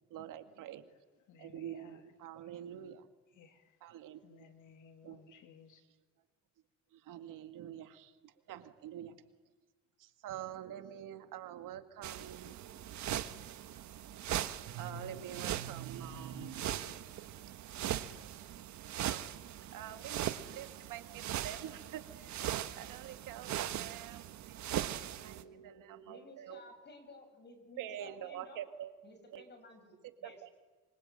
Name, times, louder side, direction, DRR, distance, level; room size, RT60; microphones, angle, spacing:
voice 1, 0.1-0.9 1.4-3.1 3.8-4.5 5.0-5.4 6.9-9.2 10.0-12.6 14.7-16.9 19.0-19.4 19.7-26.8 27.8-28.9 29.3-29.5 30.2-30.5, right 10 dB, 80° right, 7 dB, 2.2 m, -46 dB
voice 2, 1.3-2.0 3.3-3.8 4.2-5.8, left 6 dB, 70° left, 6 dB, 2.8 m, -59 dB
sound 1, 12.0-25.4, right 11 dB, 65° right, 1.4 m, -40 dB
voice 3, 26.1-28.6 29.0-30.4, left 2 dB, 35° left, 7 dB, 6.8 m, -55 dB
25.5 x 25.0 x 9.0 m, 1.3 s
cardioid pair, 130°, 31 cm